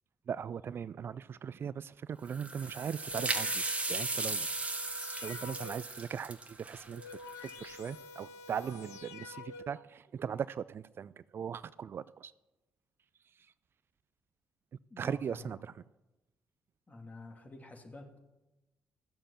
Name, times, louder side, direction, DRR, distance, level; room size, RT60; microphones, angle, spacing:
voice 1, 0.3-3.6 3.9-4.5 5.2-7.0 7.4-12.3 15.0-15.6, right 7 dB, 50° right, 18 dB, 0.3 m, -39 dB
sound 1, 2.3-7.8, right 2 dB, 25° right, 1.6 m, -36 dB
sound 2, 2.8-6.0 6.7-9.9, left 4 dB, 75° left, 0.8 m, -49 dB
voice 2, 14.9-15.5 16.9-18.2, left 2 dB, 30° left, 3 dB, 2.7 m, -49 dB
14.0 x 7.4 x 7.2 m, 1.0 s
hypercardioid pair, 45°, 5 cm